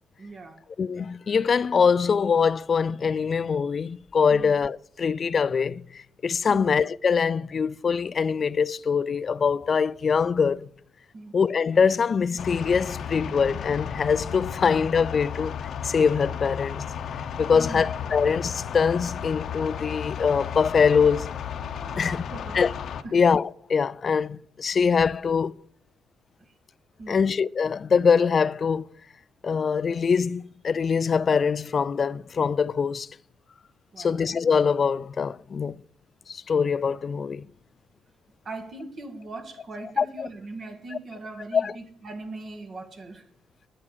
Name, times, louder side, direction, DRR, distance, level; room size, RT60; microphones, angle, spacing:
voice 1, 0.2-0.6 4.3-4.6 6.5-6.7 11.1-11.4 17.5-17.9 21.9-22.6 23.0-23.3 26.4-26.5 27.0-27.2 33.9-34.2 38.4-43.3, right 2 dB, 50° right, 2.0 m, -40 dB
voice 2, 0.8-10.7 11.3-15.5 15.8-16.8 17.4-21.3 22.0-22.2 22.5-22.7 23.1-25.5 27.1-28.8 29.4-33.1 34.0-35.8 36.3-37.5 40.0-40.3 41.5-41.7, left 6 dB, 45° left, 0.4 m, -23 dB
sound 1, 12.4-23.0, left 8 dB, 65° left, 0.9 m, -34 dB
9.7 x 8.6 x 6.6 m
cardioid pair, 90°, 0 cm